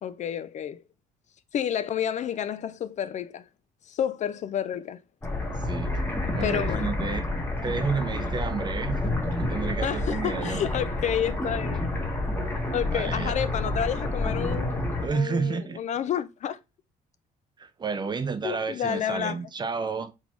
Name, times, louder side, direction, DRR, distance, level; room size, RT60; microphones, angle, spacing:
voice 1, 0.0-0.8 1.5-3.5 3.9-5.0 6.4-6.9 9.8-11.9 12.7-16.6 18.4-19.4, left 9 dB, 45° left, 0.4 m, -30 dB
sound 1, 5.2-15.1, left 2 dB, 10° left, 1.2 m, -29 dB
voice 2, 5.6-7.3 7.6-9.0 9.3-10.6 12.9-13.3 15.0-15.8 17.6-20.1, right 5 dB, 25° right, 0.5 m, -31 dB
4.0 x 3.6 x 3.0 m
cardioid pair, 110°, 17 cm